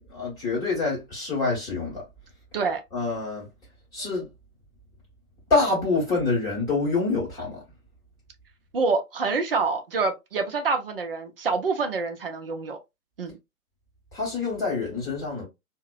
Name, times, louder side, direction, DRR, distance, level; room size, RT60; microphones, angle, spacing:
voice 1, 0.1-2.0 2.9-3.5 3.9-4.3 5.5-7.6 14.1-15.5, left 3 dB, 10° left, 1.0 m, -26 dB
voice 2, 8.7-12.8 13.2-13.4, right 4 dB, 40° right, 0.6 m, -26 dB
2.6 x 2.1 x 2.4 m
figure-of-eight pair, 130°, 45 cm